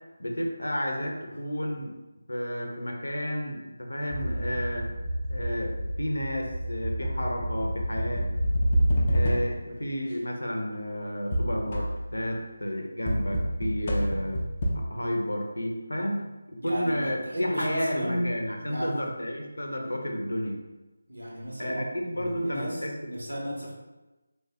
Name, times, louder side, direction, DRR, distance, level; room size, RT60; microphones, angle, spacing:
voice 1, 0.2-1.9 2.3-4.9 5.3-8.2 9.1-14.4 14.7-20.6 21.6-22.9, equal, 85° left, 1 dB, 0.6 m, -31 dB
sound 1, 4.1-9.8 11.3-12.2 13.1-14.8, equal, 35° left, 0.4 m, -28 dB
voice 2, 16.6-19.1 21.1-23.7, equal, 75° right, -2 dB, 0.8 m, -34 dB
3.2 x 2.2 x 2.7 m, 1.1 s
figure-of-eight pair, 160°, 0 cm